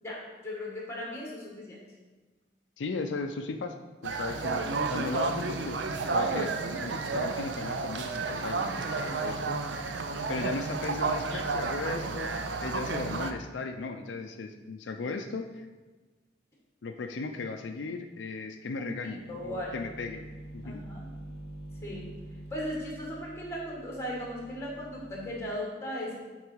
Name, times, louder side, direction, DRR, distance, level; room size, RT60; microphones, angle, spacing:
voice 1, 0.0-1.8 19.0-19.7 20.6-21.1 21.8-22.2 22.5-26.2, equal, 15° left, -3 dB, 1.8 m, -37 dB
voice 2, 2.8-3.8 4.0-9.6 10.3-12.3 12.6-15.7 16.8-20.2 20.5-20.8, left 3 dB, 80° left, 6 dB, 0.4 m, -37 dB
sound 1, 4.0-13.3, right 3 dB, 80° right, 0.5 m, -31 dB
sound 2, 19.2-25.4, right 1 dB, 35° right, 1.2 m, -46 dB
8.3 x 3.9 x 4.5 m, 1.3 s
head